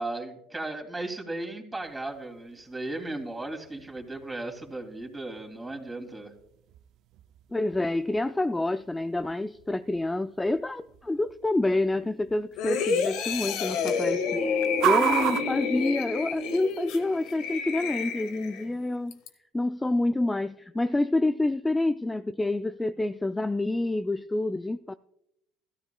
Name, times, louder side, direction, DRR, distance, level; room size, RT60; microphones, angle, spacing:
voice 1, 0.0-6.3, right 2 dB, 15° right, 2.7 m, -36 dB
sound 1, 1.8-16.6, right 13 dB, 60° right, 0.4 m, -37 dB
voice 2, 7.5-19.1 19.5-24.9, left 2 dB, 10° left, 0.3 m, -28 dB
sound 2, 12.6-18.7 19.1-19.3, left 5 dB, 70° left, 1.4 m, -29 dB
15.5 x 13.5 x 2.3 m
supercardioid pair, 100°, 0 cm